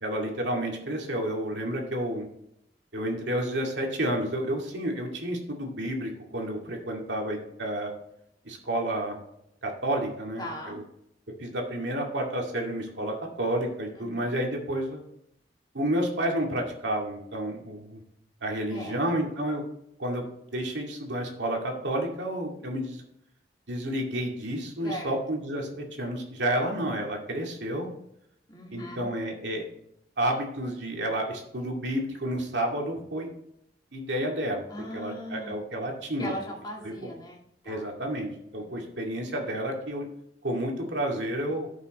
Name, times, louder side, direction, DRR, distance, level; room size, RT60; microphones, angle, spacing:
voice 1, 0.0-2.3 2.9-7.9 8.4-9.2 9.6-10.8 11.4-15.0 15.7-18.0 18.4-19.6 20.0-20.2 20.5-23.0 23.7-27.9 28.7-29.6 30.2-33.3 33.9-34.7 34.9-36.3 37.0-37.1 37.7-40.1 40.4-41.7, right 1 dB, 90° right, 1 dB, 2.2 m, -30 dB
voice 2, 10.4-10.8 13.9-14.1 18.7-19.0 24.8-25.2 28.5-29.1 34.7-35.5 36.2-37.9 38.5-38.9, equal, 25° left, -1 dB, 2.2 m, -39 dB
14.5 x 5.8 x 3.1 m, 0.76 s
head